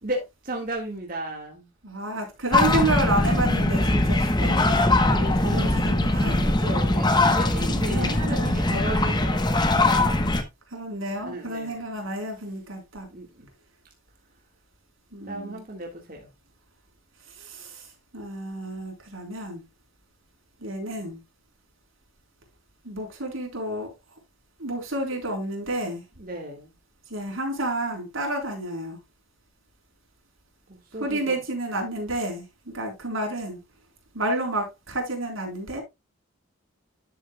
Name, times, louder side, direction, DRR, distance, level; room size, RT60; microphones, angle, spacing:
voice 1, 0.0-1.7 5.1-5.7 6.1-10.3 11.2-11.8 12.2-12.3 13.1-13.5 15.2-16.3 26.2-26.7 30.7-31.4, right 1 dB, 40° right, 1.8 m, -35 dB
voice 2, 1.8-4.8 5.4-6.5 7.9-8.5 10.7-13.1 15.1-15.6 17.3-19.6 20.6-21.2 22.8-24.2 24.6-26.0 27.1-29.0 31.0-33.6 34.1-35.8, right 1 dB, 75° right, 4.0 m, -30 dB
sound 1, 2.5-10.4, left 2 dB, 20° left, 1.0 m, -21 dB
12.5 x 7.0 x 2.3 m
head